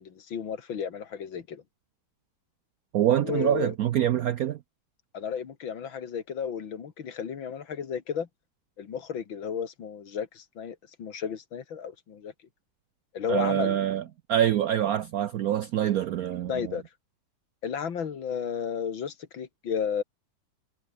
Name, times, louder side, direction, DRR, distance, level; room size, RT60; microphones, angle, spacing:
voice 1, 0.0-1.6 3.2-3.7 5.1-8.3 8.8-12.3 13.1-13.8 16.5-16.8 17.6-20.0, left 7 dB, 75° left, 2.6 m, -33 dB
voice 2, 2.9-4.6 13.3-14.0 14.3-16.7, right 11 dB, 70° right, 0.8 m, -25 dB
omnidirectional pair, 2.2 m